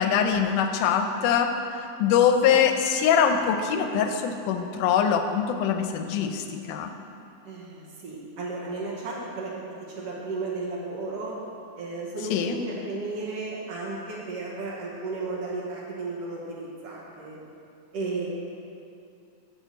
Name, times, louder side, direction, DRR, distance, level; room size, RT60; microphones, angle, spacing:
voice 1, 0.0-1.6 2.0-6.9 12.3-12.6, left 7 dB, 90° left, 6 dB, 2.2 m, -23 dB
voice 2, 7.4-11.3 11.8-17.4 17.9-18.3, right 3 dB, 60° right, -4 dB, 1.9 m, -34 dB
10.5 x 4.5 x 6.9 m, 2.6 s
omnidirectional pair, 3.6 m